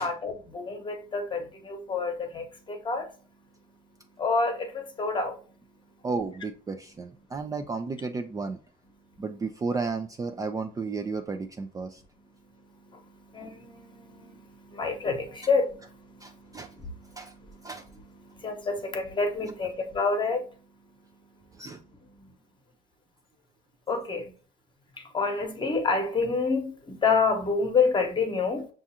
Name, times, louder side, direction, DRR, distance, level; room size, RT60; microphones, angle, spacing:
voice 1, 0.0-6.1 9.0-9.2 12.2-22.3 23.9-24.3 25.0-28.7, left 4 dB, 30° left, 1.0 m, -30 dB
voice 2, 6.0-8.6 9.2-12.0 16.2-16.8 17.2-17.3 17.6-17.9 21.5-21.8, right 4 dB, 20° right, 0.3 m, -33 dB
5.9 x 2.4 x 2.7 m
cardioid pair, 110°, 17 cm